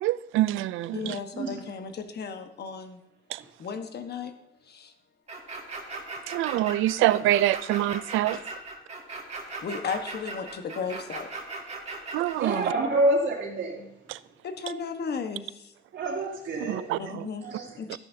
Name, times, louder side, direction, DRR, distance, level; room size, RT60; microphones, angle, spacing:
voice 1, 0.0-1.2 3.3-3.4 6.3-8.4 12.1-12.7 14.1-14.2 16.6-17.3, right 14 dB, 90° right, 0.4 m, -26 dB
voice 2, 0.9-3.0 3.6-4.3 4.6-4.9 8.3-8.4 9.6-11.3 14.4-15.7 17.0-17.5 17.8-18.0, left 5 dB, 55° left, 1.3 m, -35 dB
sound 1, 5.3-12.4, right 3 dB, 35° right, 2.2 m, -38 dB
voice 3, 12.4-13.8 15.9-16.9 17.4-17.7, right 1 dB, 70° right, 2.8 m, -27 dB
13.5 x 10.5 x 2.8 m
cardioid pair, 90°, 20 cm